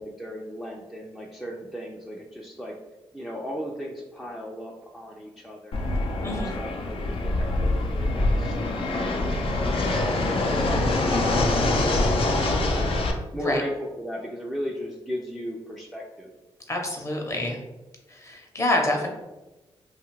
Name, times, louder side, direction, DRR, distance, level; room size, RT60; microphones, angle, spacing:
voice 1, 0.0-2.8 3.1-16.3, equal, ahead, -2 dB, 0.4 m, -37 dB
Fixed-wing aircraft airplane, 5.7-13.1, left 2 dB, 60° left, 0.5 m, -24 dB
voice 2, 6.2-6.5 13.4-13.6 16.7-17.6 18.1-19.1, left 1 dB, 30° left, 1 dB, 0.7 m, -27 dB
2.6 x 2.4 x 3.0 m, 1.1 s
cardioid pair, 55°, 10 cm